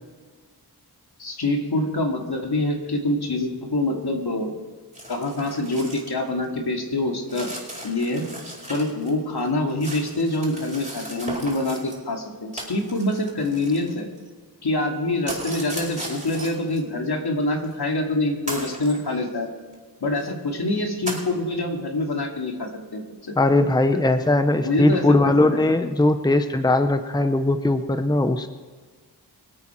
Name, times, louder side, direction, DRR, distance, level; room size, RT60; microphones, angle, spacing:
voice 1, 1.2-4.5 5.1-7.5 7.8-8.2 8.7-14.1 14.6-19.5 20.0-23.4 23.9-24.0 24.6-25.6, left 2 dB, 70° left, 1 dB, 2.5 m, -25 dB
sound 1, 4.9-6.2 6.4-6.5 7.3-9.1 9.4-12.0 12.5-14.3 15.3-16.8 17.6-17.7 18.5-19.0 19.7-19.8 20.2-20.3 21.1-21.3, right 1 dB, 20° right, 4.8 m, -36 dB
voice 2, 23.4-28.5, left 2 dB, 10° left, 9 dB, 0.8 m, -19 dB
24.5 x 8.8 x 4.5 m, 1.5 s
wide cardioid pair, 55°, 40 cm